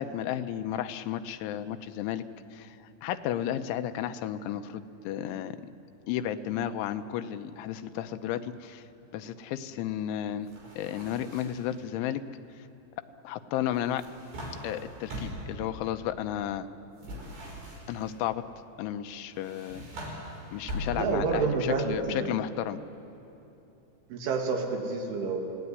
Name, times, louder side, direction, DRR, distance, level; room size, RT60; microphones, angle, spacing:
voice 1, 0.0-2.2 2.5-5.6 6.1-8.8 9.1-10.5 10.8-12.2 12.6-12.7 13.2-14.0 14.6-16.7 17.9-18.4 18.8-19.8 20.5-22.8, left 11 dB, 90° left, 9 dB, 3.3 m, -33 dB
sound 1, 10.5-11.7 13.7-15.6 17.0-18.1 19.3-21.3, equal, 55° right, 7.6 m, -40 dB
voice 2, 20.9-22.3 24.1-25.6, right 4 dB, 90° right, 1 dB, 4.9 m, -29 dB
29.0 x 18.0 x 9.7 m, 2.9 s
omnidirectional pair, 5.3 m